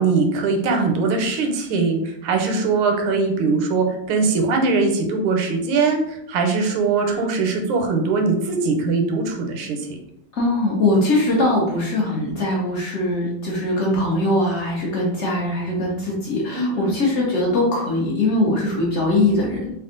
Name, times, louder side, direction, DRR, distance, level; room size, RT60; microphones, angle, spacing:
voice 1, 0.0-9.8 16.5-16.9, right 4 dB, 90° right, 3 dB, 1.5 m, -21 dB
voice 2, 10.3-19.7, left 1 dB, 65° left, -4 dB, 0.7 m, -21 dB
3.5 x 2.3 x 3.7 m, 0.76 s
omnidirectional pair, 2.3 m